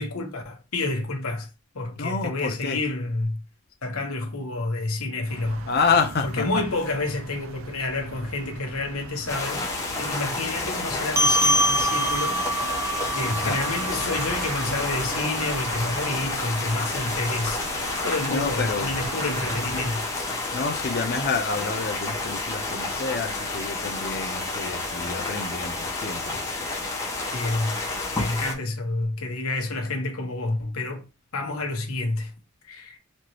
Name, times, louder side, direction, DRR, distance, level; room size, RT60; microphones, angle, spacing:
voice 1, 0.0-1.5 1.7-3.4 3.8-5.7 6.2-9.7 10.0-12.7 13.1-17.7 18.0-20.1 27.3-27.8 28.1-31.0 31.3-32.3 32.7-33.0, left 2 dB, 80° left, 1.2 m, -29 dB
voice 2, 2.0-2.8 5.7-6.6 13.2-13.6 18.3-18.9 20.5-26.4, left 4 dB, 50° left, 0.6 m, -28 dB
sound 1, 5.3-19.9, right 5 dB, 65° right, 0.4 m, -39 dB
sound 2, 9.3-28.5, left 2 dB, 15° left, 1.1 m, -30 dB
sound 3, 11.2-15.9, equal, 15° right, 0.5 m, -26 dB
4.3 x 3.1 x 3.0 m
head